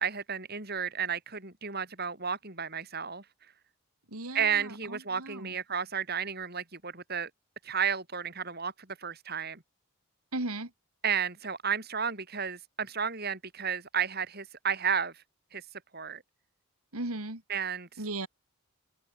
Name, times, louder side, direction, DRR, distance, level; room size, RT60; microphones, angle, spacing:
voice 1, 0.0-3.2 4.3-7.3 7.6-9.6 11.0-15.2 15.5-15.6 15.9-16.2 17.5-17.9, right 7 dB, 45° right, 5.8 m, -32 dB
voice 2, 4.1-5.6 10.3-10.7 16.9-17.4 18.0-18.3, right 2 dB, 90° right, 3.8 m, -36 dB
open air
head